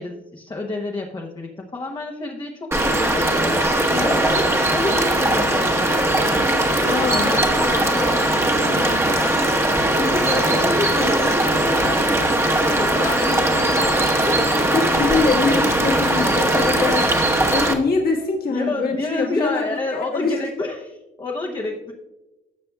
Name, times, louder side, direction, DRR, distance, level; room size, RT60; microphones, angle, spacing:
voice 1, 0.0-3.3 4.0-6.0 6.6-9.5 9.9-14.7 18.5-21.9, left 2 dB, 20° left, 1 dB, 0.9 m, -29 dB
sound 1, 2.7-17.7, right 1 dB, 15° right, 1.1 m, -19 dB
voice 2, 6.8-7.6 14.7-20.3, left 4 dB, 50° left, -1 dB, 1.5 m, -24 dB
12.5 x 6.8 x 2.3 m, 1.0 s
cardioid pair, 90°, 20 cm